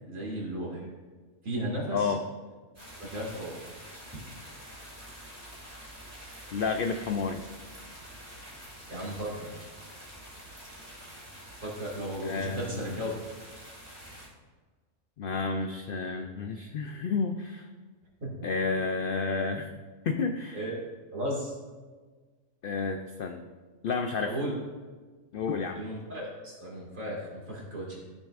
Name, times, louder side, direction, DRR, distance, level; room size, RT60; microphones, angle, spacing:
voice 1, 0.1-0.9 1.4-2.1 3.0-3.6 8.9-9.6 11.6-13.1 18.2-18.3 20.5-20.8 21.1-21.6 24.2-24.5 25.7-28.0, right 1 dB, 65° right, -3 dB, 2.4 m, -35 dB
voice 2, 1.9-2.2 6.5-7.4 12.2-12.9 15.2-17.7 18.4-19.8 20.0-20.6 22.6-23.5 23.8-24.4 25.3-25.8, left 4 dB, 80° left, 5 dB, 0.4 m, -31 dB
sound 1, 2.7-14.3, equal, 10° right, 2.6 m, -47 dB
13.5 x 6.8 x 2.4 m, 1.4 s
omnidirectional pair, 1.5 m